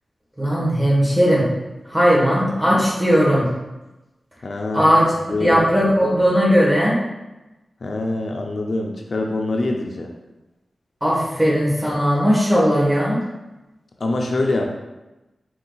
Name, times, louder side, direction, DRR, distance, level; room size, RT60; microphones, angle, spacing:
voice 1, 0.4-1.5 1.9-3.4 4.7-5.1 5.4-7.0 11.0-13.2, equal, 15° right, -6 dB, 1.3 m, -17 dB
voice 2, 4.4-5.6 7.8-10.1 14.0-14.6, left 2 dB, 60° left, 1 dB, 0.4 m, -24 dB
4.6 x 2.3 x 3.9 m, 1.0 s
wide cardioid pair, 100°, 0 cm